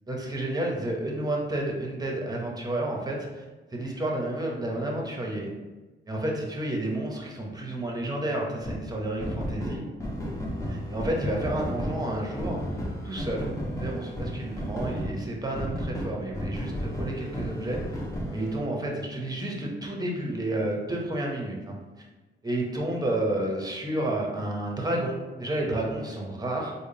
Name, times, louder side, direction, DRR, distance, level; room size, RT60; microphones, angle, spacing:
voice 1, 0.1-3.4 3.7-5.5 6.1-9.9 10.7-12.6 13.0-13.5 13.8-18.0 18.3-21.8 22.4-26.7, right 1 dB, 20° right, -1 dB, 0.8 m, -30 dB
sound 1, 8.6-8.8 9.2-15.1 15.5-18.6, equal, 15° left, 0.9 m, -33 dB
3.5 x 2.2 x 3.8 m, 1.2 s
cardioid pair, 75°, 20 cm